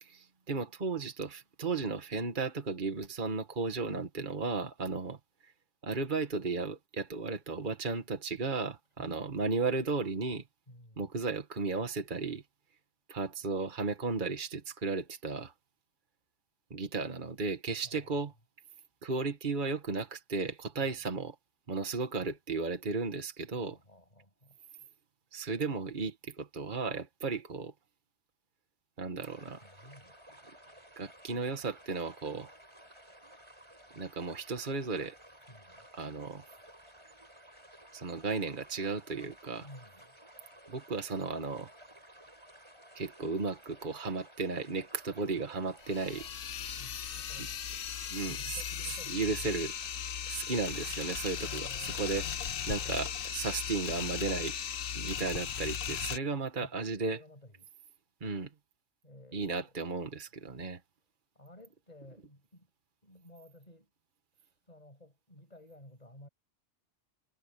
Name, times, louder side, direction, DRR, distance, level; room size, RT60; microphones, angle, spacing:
voice 1, 0.0-5.2 5.8-10.4 11.0-12.4 13.1-15.5 16.7-18.3 19.0-21.4 21.7-23.8 25.3-27.7 29.0-29.6 31.0-32.5 34.0-35.2 35.9-36.5 37.9-39.7 40.7-41.7 43.0-46.3 48.1-49.7 50.3-54.6 54.9-57.2 58.2-58.5 59.3-60.8, right 4 dB, 40° right, 1.8 m, -35 dB
voice 2, 10.7-11.1 17.8-18.2 20.8-21.1 23.5-24.9 29.6-30.8 35.5-35.9 39.6-40.2 46.8-47.6 48.2-49.7 50.2-50.3 51.3-52.3 52.8-53.2 55.1-55.4 56.6-57.7 59.0-59.7 61.4-62.7 63.0-63.9 64.4-66.3, left 1 dB, 30° left, 7.4 m, -54 dB
sound 1, 29.2-46.3, equal, 25° right, 7.8 m, -55 dB
sound 2, 45.8-56.2, left 8 dB, 55° left, 0.9 m, -37 dB
omnidirectional pair, 1.3 m